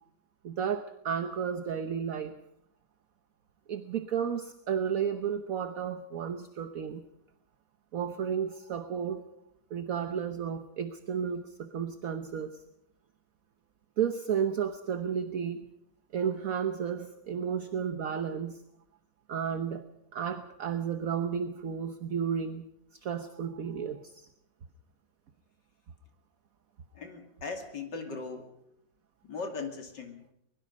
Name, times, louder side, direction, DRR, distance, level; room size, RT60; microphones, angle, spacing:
voice 1, 0.4-2.3 3.7-7.0 7.9-9.3 9.7-12.6 14.0-15.7 16.1-18.6 19.3-19.8 20.1-22.7 22.9-24.3, right 7 dB, 55° right, 9 dB, 1.2 m, -32 dB
voice 2, 26.9-28.5 29.2-30.3, left 4 dB, 65° left, 4 dB, 3.3 m, -39 dB
22.5 x 22.0 x 5.4 m, 0.80 s
omnidirectional pair, 2.0 m